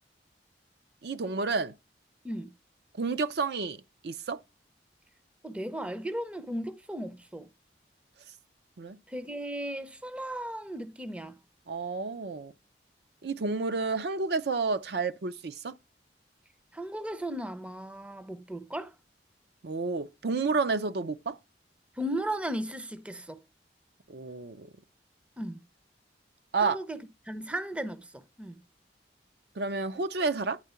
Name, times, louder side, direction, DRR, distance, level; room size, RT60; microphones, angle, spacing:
voice 1, 1.0-1.7 3.0-4.4 8.8-9.0 11.7-12.5 13.2-15.7 19.6-21.4 24.1-24.7 26.5-26.8 29.6-30.6, right 4 dB, 60° right, 0.5 m, -30 dB
voice 2, 5.4-7.5 9.1-11.3 16.7-18.9 22.0-23.4 25.4-25.6 26.6-27.0 27.3-28.6, right 1 dB, 5° right, 0.5 m, -36 dB
9.7 x 3.6 x 6.9 m
head